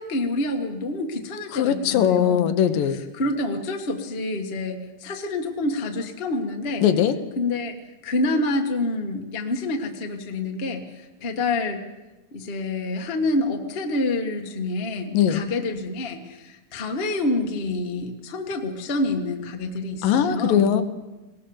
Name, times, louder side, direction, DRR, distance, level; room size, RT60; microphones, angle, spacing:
voice 1, 0.0-2.5 3.2-6.9 7.4-7.7 8.0-10.9 11.2-11.8 12.3-20.7, left 2 dB, 45° left, 4 dB, 0.7 m, -27 dB
voice 2, 1.5-3.0 6.8-7.2 15.1-15.4 20.0-20.8, left 9 dB, 90° left, 9 dB, 2.8 m, -20 dB
20.5 x 18.5 x 7.1 m, 1.1 s
omnidirectional pair, 3.8 m